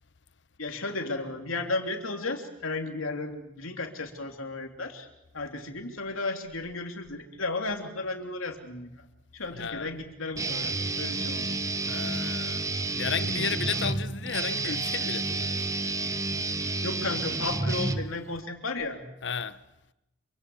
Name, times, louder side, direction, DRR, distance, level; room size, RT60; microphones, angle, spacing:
voice 1, 0.6-5.1 5.3-9.0 9.3-11.6 16.8-19.0, left 3 dB, 85° left, 3.1 m, -34 dB
voice 2, 9.5-9.9 11.9-15.7 19.2-19.6, left 6 dB, 55° left, 0.9 m, -33 dB
Guitar, 10.4-18.4, right 3 dB, 15° right, 0.8 m, -30 dB
27.0 x 24.0 x 7.2 m
head